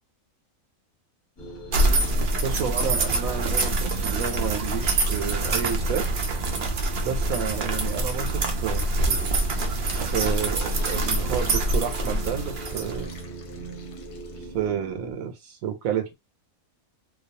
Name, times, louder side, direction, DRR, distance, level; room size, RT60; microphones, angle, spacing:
sound 1, 1.4-15.1, right 3 dB, 20° left, 0.9 m, -40 dB
sound 2, 1.7-13.2, right 2 dB, 65° right, 0.5 m, -25 dB
voice 1, 2.4-6.0 7.0-9.3 10.1-13.1 14.5-16.1, right 8 dB, 85° right, 1.0 m, -30 dB
Fill (with liquid), 9.0-14.7, left 5 dB, 65° left, 0.9 m, -47 dB
2.3 x 2.2 x 2.6 m
omnidirectional pair, 1.4 m